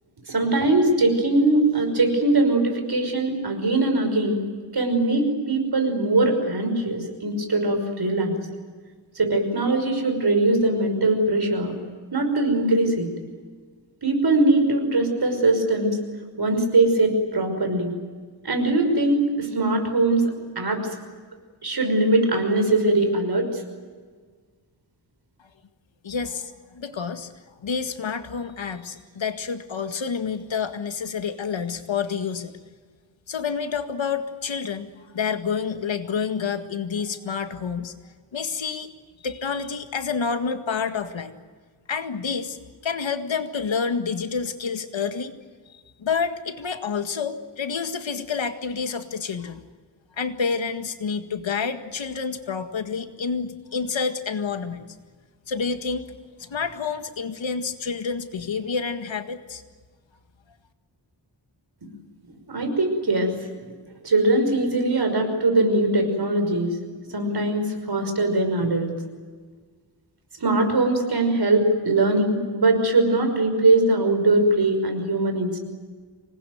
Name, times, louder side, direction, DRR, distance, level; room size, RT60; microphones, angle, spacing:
voice 1, 0.3-4.4 4.7-8.3 9.2-11.7 12.1-13.1 14.0-16.0 16.4-17.9 18.4-20.2 20.6-20.8 21.6-23.6 62.5-63.3 64.0-66.8 67.1-68.9 70.4-75.6, right 2 dB, 60° right, 5 dB, 5.7 m, -21 dB
voice 2, 26.0-27.3 27.6-32.5 33.3-37.9 38.3-38.9 39.2-41.3 41.9-42.6 42.8-45.3 46.0-49.6 50.2-54.9 55.5-56.1 56.4-59.6, left 5 dB, 90° left, 8 dB, 1.9 m, -28 dB
26.0 x 20.0 x 9.4 m, 1.5 s
wide cardioid pair, 120°, 44 cm